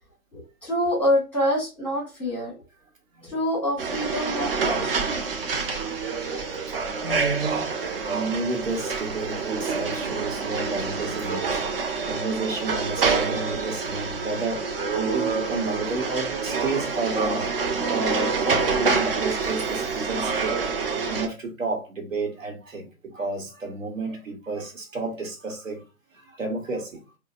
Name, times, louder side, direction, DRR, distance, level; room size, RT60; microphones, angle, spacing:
voice 1, 0.3-2.6 3.2-5.1, left 1 dB, 5° left, 1.0 m, -26 dB
sound 1, 3.8-21.3, right 5 dB, 45° right, 0.5 m, -27 dB
voice 2, 5.7-11.7 12.1-25.8 26.1-27.0, right 3 dB, 65° right, 1.1 m, -31 dB
3.7 x 2.0 x 2.4 m
figure-of-eight pair, 125°, 43 cm